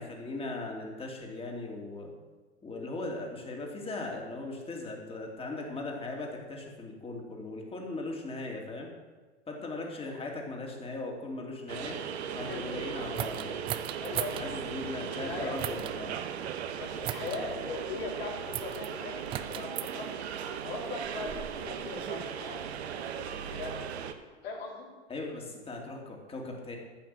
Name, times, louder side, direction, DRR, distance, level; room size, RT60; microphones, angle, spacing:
voice 1, 0.0-2.1 2.6-8.9 9.5-12.0 12.3-13.6 14.3-16.2 17.2-17.4 25.1-26.8, left 2 dB, 15° left, 1 dB, 2.7 m, -38 dB
sound 1, 11.7-24.1, right 8 dB, 65° right, 1.1 m, -38 dB
sound 2, 13.1-14.5 15.6-16.0 17.0-17.4 18.5-18.9 19.3-19.9 20.8-22.2, right 12 dB, 15° right, 0.3 m, -37 dB
voice 2, 14.0-14.4 14.7-15.5 16.8-20.1 20.6-23.7 24.4-24.9, left 4 dB, 55° left, -3 dB, 3.8 m, -40 dB
14.0 x 5.9 x 7.8 m, 1.3 s
hypercardioid pair, 105°, 35 cm